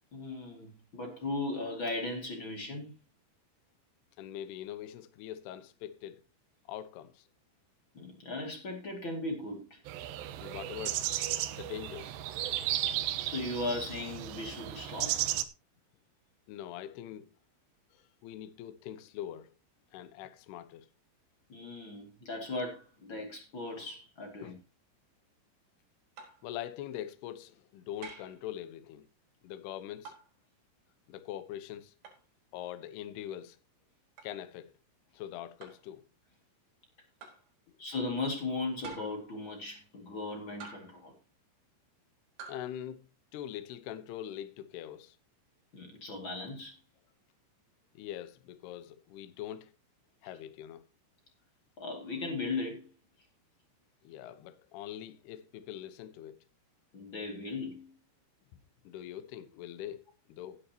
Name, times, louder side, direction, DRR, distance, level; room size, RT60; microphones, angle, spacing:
voice 1, 0.1-3.0 7.9-9.8 13.2-15.2 21.5-24.6 37.8-41.1 45.7-46.8 51.8-52.9 56.9-57.9, left 2 dB, 40° left, 1.8 m, -37 dB
voice 2, 4.2-6.2 6.7-7.2 10.4-11.0 11.5-12.2 16.5-17.3 17.9-19.5 19.9-20.9 24.4-24.6 26.4-29.1 29.4-30.1 31.1-31.9 32.5-33.6 34.2-34.7 35.1-36.0 42.5-43.1 43.3-45.2 47.9-49.7 50.2-50.8 54.0-56.4 58.5-58.6 58.8-60.6, left 11 dB, 75° left, 2.4 m, -43 dB
sound 1, 9.9-15.4, right 13 dB, 80° right, 2.6 m, -34 dB
sound 2, 26.2-26.5 28.0-28.4 30.1-30.3 32.0-32.2 34.2-34.4 35.6-35.9 37.2-37.5 38.8-39.3 40.6-41.1 42.4-42.7, right 5 dB, 55° right, 6.4 m, -48 dB
16.5 x 9.8 x 2.9 m
omnidirectional pair, 6.0 m